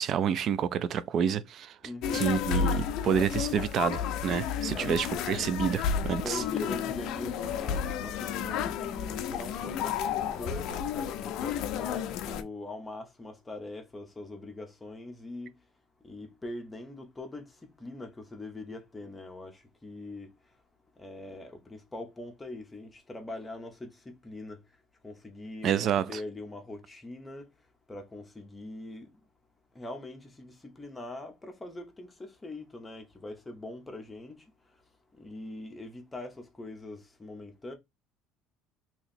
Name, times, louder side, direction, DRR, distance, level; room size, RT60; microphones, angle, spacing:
voice 1, 0.0-1.8 2.1-6.4 25.6-26.2, right 8 dB, 35° right, 0.3 m, -28 dB
voice 2, 1.8-2.3 4.6-4.9 6.0-15.5 16.0-17.5 17.8-20.3 21.0-24.6 25.0-27.5 27.9-29.1 29.7-34.4 35.2-37.7, left 2 dB, 10° left, 0.7 m, -42 dB
sound 1, 2.0-12.4, left 8 dB, 50° left, 0.5 m, -32 dB
2.9 x 2.8 x 4.1 m
cardioid pair, 170°, 0 cm